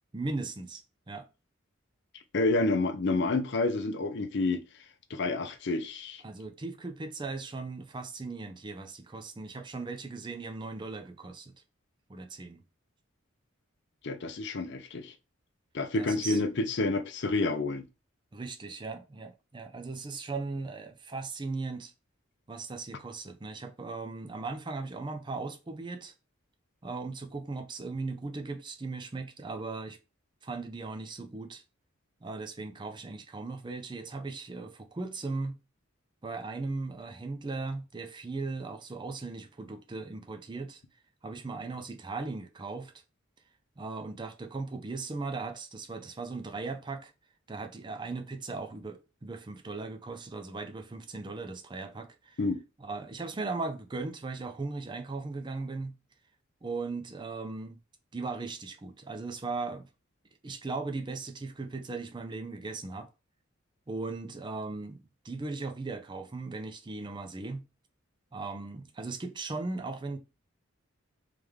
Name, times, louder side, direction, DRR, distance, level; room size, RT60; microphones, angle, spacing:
voice 1, 0.1-0.8 1.1-1.3 6.2-11.5 12.1-12.6 16.0-16.4 18.3-21.9 22.5-26.1 26.8-30.0 30.4-31.6 32.2-35.6 36.2-40.8 41.2-42.9 43.8-47.1 47.5-52.4 52.8-56.0 56.6-57.8 58.1-59.9 60.4-63.1 63.9-67.6 68.3-70.2, right 3 dB, 20° right, 0.4 m, -38 dB
voice 2, 2.3-4.6 5.1-6.2 14.0-15.1 15.7-17.8 52.4-52.6, left 2 dB, 55° left, 0.5 m, -29 dB
3.4 x 3.2 x 3.5 m
head